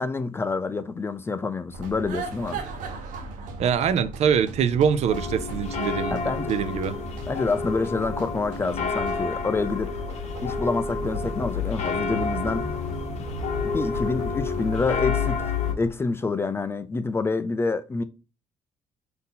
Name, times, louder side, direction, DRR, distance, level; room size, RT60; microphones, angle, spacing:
voice 1, 0.0-2.6 6.1-6.5 7.3-9.9 10.4-12.7 13.6-15.5 15.8-18.0, left 4 dB, 20° left, 0.3 m, -27 dB
sound 1, 1.7-15.9, right 3 dB, 90° right, 0.9 m, -38 dB
voice 2, 3.6-7.0, right 7 dB, 55° right, 0.4 m, -24 dB
sound 2, 5.1-15.7, left 5 dB, 55° left, 0.7 m, -29 dB
4.0 x 2.7 x 3.7 m
cardioid pair, 130°, 13 cm